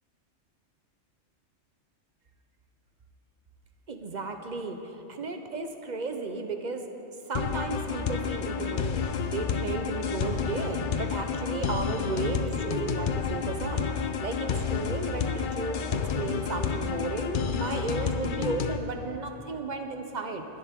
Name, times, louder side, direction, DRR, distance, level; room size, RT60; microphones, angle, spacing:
voice 1, 3.9-6.9 7.2-20.5, right 3 dB, 40° right, 5 dB, 1.0 m, -34 dB
sound 1, 7.3-18.8, left 6 dB, 50° left, 0.7 m, -30 dB
21.5 x 10.5 x 3.7 m, 2.9 s
omnidirectional pair, 1.3 m